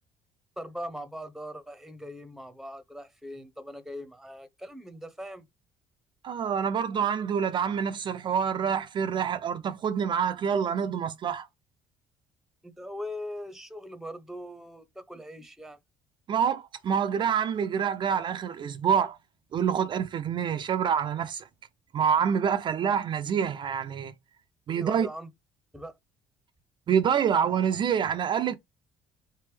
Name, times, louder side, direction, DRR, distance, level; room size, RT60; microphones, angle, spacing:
voice 1, 0.6-5.4 12.6-15.8 24.8-25.3 25.7-25.9, equal, 5° right, 0.8 m, -40 dB
voice 2, 6.2-11.5 16.3-19.2 19.5-21.5 21.9-24.1 24.7-25.1 26.9-28.6, right 7 dB, 45° right, 0.4 m, -26 dB
4.0 x 3.4 x 3.3 m
supercardioid pair, 80°, 11 cm